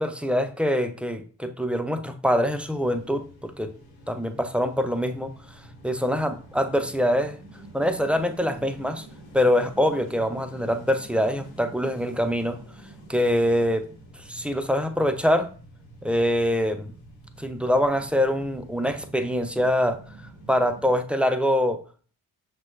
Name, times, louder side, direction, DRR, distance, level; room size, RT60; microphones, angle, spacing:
voice 1, 0.0-3.7 4.1-5.3 5.8-7.4 7.7-9.0 9.3-12.6 13.1-13.9 14.3-15.5 16.0-16.9 17.4-20.0 20.5-21.8, equal, 5° right, 8 dB, 0.4 m, -24 dB
sound 1, 2.4-21.0, right 1 dB, 85° left, 1.0 m, -47 dB
5.9 x 2.2 x 2.3 m, 0.39 s
hypercardioid pair, 40°, 46 cm